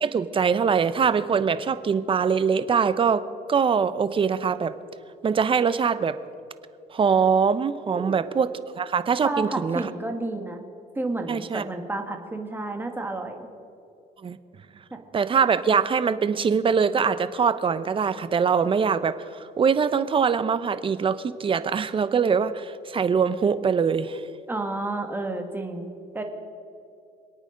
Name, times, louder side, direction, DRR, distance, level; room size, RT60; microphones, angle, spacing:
voice 1, 0.0-4.7 5.2-6.2 6.9-8.5 8.8-9.8 11.3-11.6 14.2-14.4 15.1-19.2 19.6-24.2, right 6 dB, 30° right, 14 dB, 0.7 m, -23 dB
voice 2, 9.2-10.6 11.0-13.5 14.9-15.0 24.5-26.2, right 2 dB, 10° right, 4 dB, 1.9 m, -31 dB
26.0 x 9.0 x 5.2 m, 2.5 s
cardioid pair, 110°, 17 cm